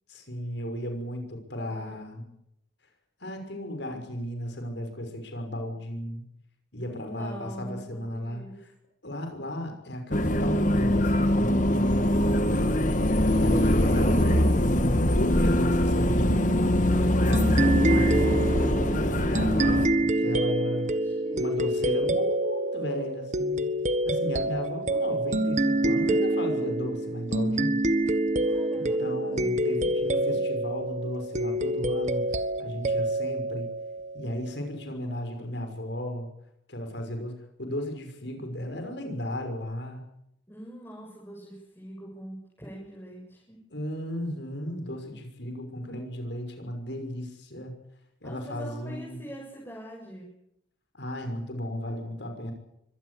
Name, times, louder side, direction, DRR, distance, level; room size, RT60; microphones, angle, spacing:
voice 1, 0.1-2.2 3.2-6.2 6.7-8.7 9.0-12.6 13.3-16.5 17.2-20.9 21.3-23.7 24.0-27.8 28.7-32.2 32.6-33.7 34.1-36.3 36.7-40.0 43.7-47.7 48.2-49.3 50.9-52.5, left 1 dB, 65° left, 5 dB, 6.1 m, -35 dB
voice 2, 1.6-2.3 6.9-8.6 12.5-14.4 17.1-17.9 21.0-22.2 28.4-29.5 30.3-30.4 40.5-43.6 48.2-50.2, right 1 dB, 10° left, -4 dB, 7.4 m, -44 dB
sound 1, 10.1-19.9, left 1 dB, 40° left, 1.7 m, -23 dB
sound 2, 17.3-34.5, right 1 dB, 40° right, 1.3 m, -27 dB
25.0 x 18.5 x 8.6 m, 0.79 s
head